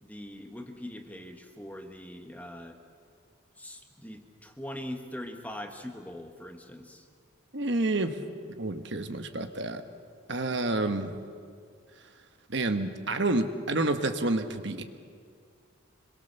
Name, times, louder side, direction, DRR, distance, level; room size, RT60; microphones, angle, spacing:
voice 1, 0.0-2.8 3.6-7.1 10.8-10.9, left 1 dB, 5° left, 5 dB, 1.4 m, -42 dB
voice 2, 7.5-8.2 8.6-9.8 10.3-11.1 12.5-14.8, right 2 dB, 55° right, 8 dB, 1.3 m, -29 dB
26.0 x 22.0 x 7.0 m, 2.2 s
head